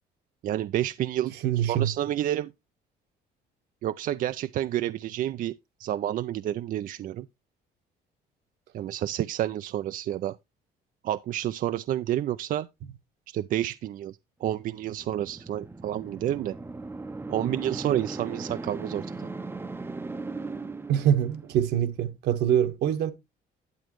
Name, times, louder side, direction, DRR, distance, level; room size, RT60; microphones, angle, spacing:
voice 1, 0.4-2.5 3.8-5.5 5.8-7.3 8.7-10.4 11.0-12.7 13.3-16.6 17.3-19.3, right 12 dB, 55° right, 0.4 m, -29 dB
voice 2, 1.4-1.9 20.9-23.1, right 10 dB, 75° right, 1.3 m, -24 dB
sound 1, 14.7-21.7, right 3 dB, 15° right, 0.6 m, -38 dB
10.5 x 7.8 x 3.0 m
cardioid pair, 110°, 17 cm